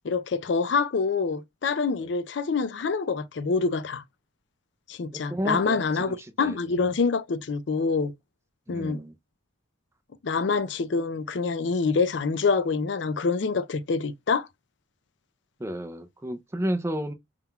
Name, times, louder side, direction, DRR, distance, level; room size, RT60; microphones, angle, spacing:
voice 1, 0.0-4.0 4.9-8.1 8.7-9.0 10.2-14.5, left 4 dB, 60° left, 0.4 m, -26 dB
voice 2, 5.3-6.6 8.7-9.1 15.6-17.1, right 1 dB, 15° right, 0.4 m, -32 dB
5.7 x 3.7 x 2.3 m
head